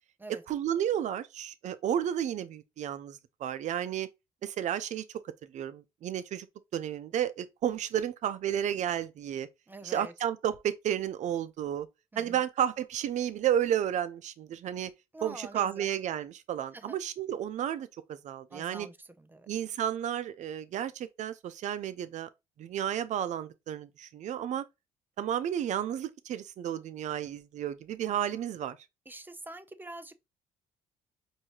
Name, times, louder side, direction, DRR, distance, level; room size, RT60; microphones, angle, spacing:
voice 1, 0.5-4.1 4.4-5.0 5.5-6.5 6.7-9.5 9.8-11.9 12.2-14.9 15.2-18.9 19.5-22.3 22.6-24.6 25.2-28.8, right 10 dB, 60° right, 0.6 m, -32 dB
voice 2, 9.7-10.1 12.1-12.4 15.1-15.9 16.7-17.0 18.5-19.5 29.1-30.1, right 2 dB, 15° right, 0.5 m, -45 dB
4.7 x 2.7 x 2.8 m
cardioid pair, 85°, 14 cm